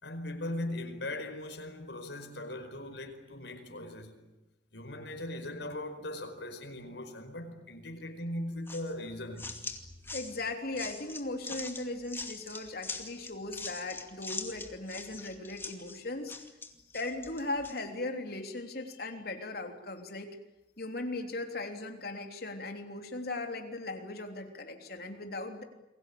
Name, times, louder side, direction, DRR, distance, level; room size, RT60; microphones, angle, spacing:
voice 1, 0.0-4.2 4.7-9.5, left 1 dB, 80° left, 4.9 m, -39 dB
sound 1, 8.7-17.8, left 3 dB, 15° left, 2.4 m, -43 dB
voice 2, 10.1-16.3 16.9-20.3 20.8-25.6, left 2 dB, 60° left, 3.3 m, -38 dB
29.0 x 22.0 x 8.6 m
head